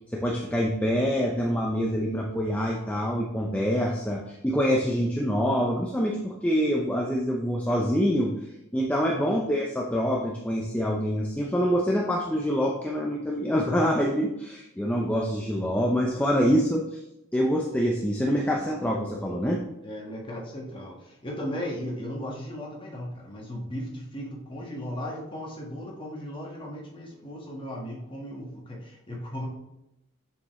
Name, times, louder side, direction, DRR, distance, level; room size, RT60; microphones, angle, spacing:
voice 1, 0.1-8.3 8.7-17.0 17.3-19.6, equal, 5° left, -1 dB, 0.6 m, -25 dB
voice 2, 9.1-9.4 19.8-29.5, equal, 25° left, -2 dB, 1.6 m, -36 dB
7.0 x 6.9 x 3.1 m, 0.88 s
head